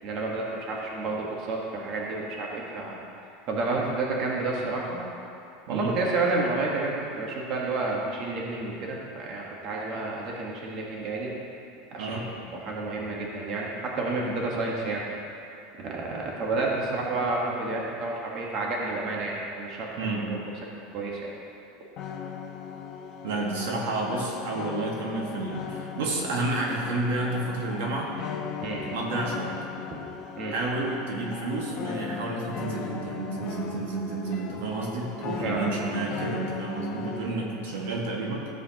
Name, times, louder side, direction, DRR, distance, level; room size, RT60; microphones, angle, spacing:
voice 1, 0.0-3.0 3.5-5.0 5.7-11.3 11.9-15.0 15.8-19.9 20.3-20.4 20.9-21.3 28.6-28.9 29.9-30.0 30.4-30.5 35.4-35.9, right 3 dB, 40° right, -3 dB, 1.5 m, -30 dB
voice 2, 12.0-12.3 20.0-20.3 23.2-28.1 28.9-29.5 30.5-38.5, right 2 dB, 85° right, -2 dB, 1.7 m, -30 dB
sound 1, 22.0-37.4, left 6 dB, 40° left, 0.9 m, -38 dB
14.0 x 7.8 x 3.0 m, 2.6 s
supercardioid pair, 150°, 0 cm